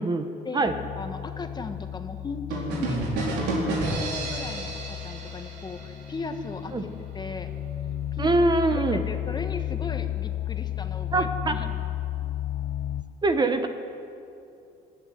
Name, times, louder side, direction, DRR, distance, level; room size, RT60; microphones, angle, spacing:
voice 1, 0.4-3.3 3.6-7.5 8.1-8.3 8.6-11.7, left 4 dB, 25° left, 7 dB, 1.5 m, -38 dB
sound 1, 0.7-13.0, left 12 dB, 50° left, 0.9 m, -33 dB
sound 2, 2.5-6.2, right 2 dB, 90° right, 4.3 m, -30 dB
voice 2, 8.2-9.0 11.1-11.6 13.2-13.7, right 2 dB, 25° right, 8 dB, 1.3 m, -23 dB
19.5 x 14.5 x 9.5 m, 2.6 s
cardioid pair, 110°, 17 cm